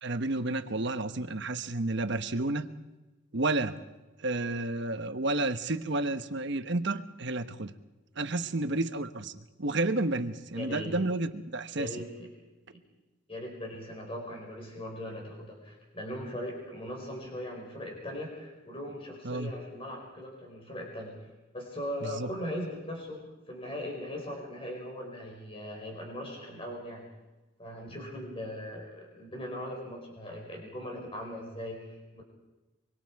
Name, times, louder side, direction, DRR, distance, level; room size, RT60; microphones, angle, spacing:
voice 1, 0.0-2.7 3.3-3.7 4.2-7.7 8.2-9.3 9.6-11.9 19.2-19.5 22.0-22.3, right 2 dB, 55° right, 9 dB, 1.1 m, -31 dB
voice 2, 10.5-10.9 11.8-12.3 12.7-12.8 13.3-27.0 27.6-32.2, left 1 dB, 25° left, 0 dB, 4.9 m, -39 dB
24.5 x 24.0 x 4.8 m, 1.1 s
head